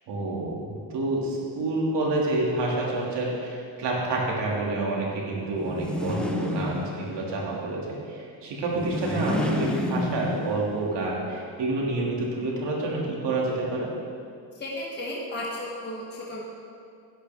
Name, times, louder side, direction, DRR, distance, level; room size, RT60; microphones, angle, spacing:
voice 1, 0.1-13.9, right 2 dB, 55° right, -3 dB, 2.7 m, -28 dB
sound 1, 5.6-7.3 8.7-10.8, left 1 dB, ahead, 0.8 m, -29 dB
voice 2, 14.5-16.4, left 1 dB, 20° left, -4 dB, 1.4 m, -34 dB
12.0 x 10.0 x 3.6 m, 2.4 s
cardioid pair, 135°, 49 cm